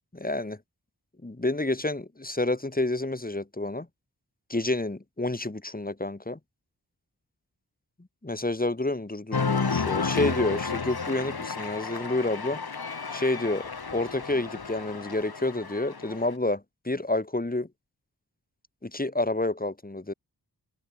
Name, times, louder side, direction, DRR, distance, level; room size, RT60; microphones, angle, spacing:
voice 1, 0.1-0.6 1.2-3.9 4.5-6.4 8.2-12.6 13.1-17.7 18.8-20.1, left 2 dB, 20° left, 2.4 m, -29 dB
Cheering, 9.3-16.3, left 5 dB, 65° left, 2.5 m, -32 dB
wide cardioid pair, 60°, 40 cm